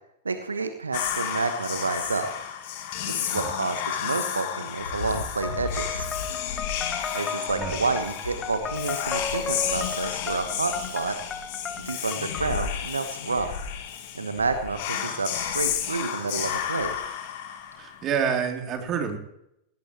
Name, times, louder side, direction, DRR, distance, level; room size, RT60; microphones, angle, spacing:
voice 1, 0.2-2.3 3.0-6.1 7.1-11.2 11.8-13.5 14.1-16.9, right 4 dB, 75° right, 9 dB, 1.2 m, -29 dB
Whispering, 0.9-18.1, left 9 dB, 50° left, 2.0 m, -32 dB
sound 1, 2.8-2.9 4.8-6.5 6.9-7.0 7.5-7.6 7.9-9.0 10.0-10.1 11.6-11.7 12.2-12.3 13.0-13.3 14.6-14.7 14.9-15.0 16.7-17.0 17.7-17.8, left 3 dB, 75° left, 2.4 m, -37 dB
sound 2, 5.4-12.6, left 6 dB, 20° left, 1.1 m, -35 dB
voice 2, 7.5-7.9 17.8-19.2, right 7 dB, 30° right, 3 dB, 3.1 m, -28 dB
19.0 x 18.0 x 3.1 m, 0.80 s
figure-of-eight pair, 90°, 0 cm